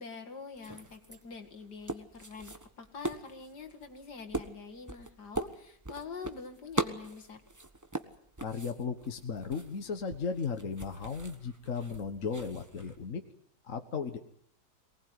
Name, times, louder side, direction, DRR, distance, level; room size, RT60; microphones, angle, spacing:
voice 1, 0.0-7.4, left 5 dB, 65° left, 6 dB, 2.8 m, -45 dB
sound 1, 0.5-13.1, right 2 dB, 10° right, 1.1 m, -41 dB
voice 2, 8.4-13.2 13.6-14.2, left 5 dB, 50° left, 6 dB, 1.6 m, -36 dB
23.0 x 19.0 x 9.6 m, 0.67 s
omnidirectional pair, 1.9 m